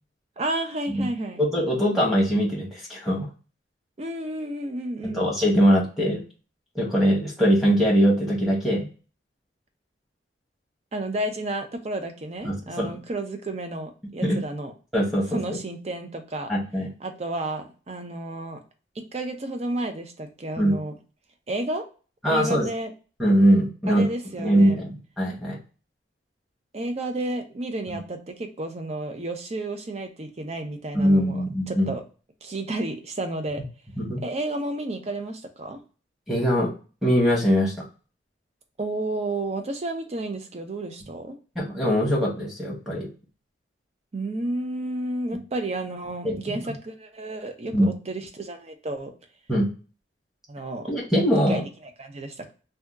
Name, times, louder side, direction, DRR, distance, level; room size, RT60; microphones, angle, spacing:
voice 1, 0.4-1.4 4.0-5.3 10.9-14.7 15.3-16.5 17.0-18.6 19.1-20.9 21.5-21.8 22.3-22.9 23.9-24.8 26.7-32.0 32.4-33.6 34.2-35.8 38.8-41.4 44.1-49.1 50.5-50.9 51.5-51.7 52.0-52.5, right 2 dB, 35° right, 5 dB, 0.5 m, -31 dB
voice 2, 1.4-3.3 5.0-6.2 6.7-8.9 12.4-12.9 14.2-14.4 14.9-15.4 16.5-16.9 20.6-20.7 22.2-22.7 23.2-24.1 24.4-25.6 30.9-31.9 34.0-34.2 36.3-36.7 37.0-37.7 41.5-43.1 46.2-46.6 47.7-47.9 49.5-49.7 50.9-51.6, equal, ahead, -5 dB, 1.0 m, -22 dB
2.7 x 2.2 x 3.4 m, 0.36 s
head